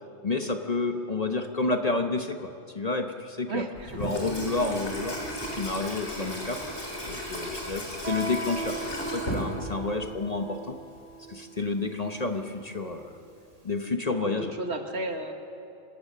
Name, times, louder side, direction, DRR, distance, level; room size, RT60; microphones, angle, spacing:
voice 1, 0.2-3.7 3.9-5.2 5.6-6.6 7.1-10.8 11.3-13.2 13.6-14.5, left 3 dB, 35° left, 5 dB, 1.0 m, -30 dB
voice 2, 3.5-4.1 14.1-15.3, right 2 dB, 60° right, 5 dB, 1.8 m, -34 dB
Water tap faucet / Sink (filling or washing), 3.8-10.0, equal, 60° left, 4.3 m, -35 dB
Guitar, 8.0-13.5, right 2 dB, 80° right, 4.5 m, -39 dB
25.5 x 17.5 x 6.7 m, 2.6 s
omnidirectional pair, 1.3 m